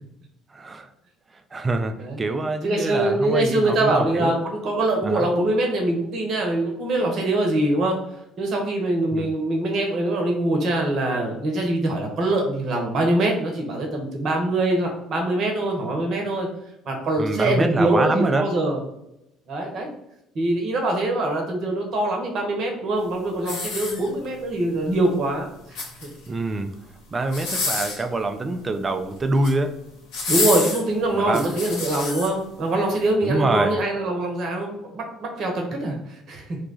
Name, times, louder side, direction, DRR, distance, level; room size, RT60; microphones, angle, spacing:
voice 1, 0.5-0.9 1.5-4.3 5.0-5.3 9.1-9.3 17.2-18.5 26.3-26.7 27.1-29.8 31.1-31.5 33.2-33.8, right 2 dB, 30° right, 8 dB, 0.5 m, -25 dB
voice 2, 2.6-8.0 8.4-16.5 16.8-18.8 19.5-19.9 20.3-26.1 30.3-36.6, right 1 dB, 55° right, 1 dB, 1.0 m, -23 dB
sound 1, 23.4-24.4 25.5-26.3 27.2-28.1 29.2-29.6 30.1-32.3 32.9-33.0, left 3 dB, 70° left, 0.9 m, -28 dB
2.9 x 2.3 x 3.8 m, 0.84 s
hypercardioid pair, 65°, 0 cm